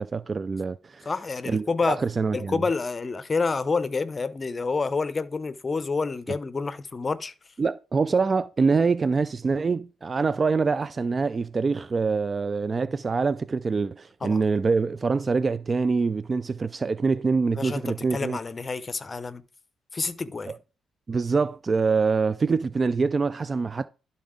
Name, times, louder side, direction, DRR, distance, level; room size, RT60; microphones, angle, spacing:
voice 1, 0.0-1.1 1.5-2.6 7.6-18.4 20.5-20.6 21.1-23.9, right 4 dB, 35° right, 0.3 m, -25 dB
voice 2, 1.1-2.0 2.3-7.3 14.2-14.4 17.6-19.4 19.9-20.5, left 4 dB, 30° left, 0.6 m, -28 dB
11.5 x 4.1 x 3.6 m
cardioid pair, 90°, 0 cm